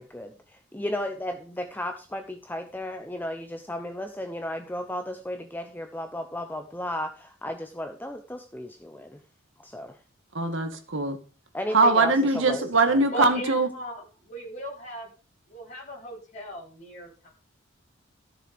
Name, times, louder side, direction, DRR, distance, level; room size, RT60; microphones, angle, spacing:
voice 1, 0.0-9.2 9.6-10.0 11.5-13.0, left 1 dB, 10° left, 6 dB, 0.8 m, -34 dB
voice 2, 10.3-11.2 11.7-13.7, right 3 dB, 65° right, 7 dB, 1.8 m, -22 dB
voice 3, 13.1-15.1 15.5-17.3, equal, 35° left, -3 dB, 4.0 m, -37 dB
13.5 x 6.8 x 5.2 m, 0.36 s
head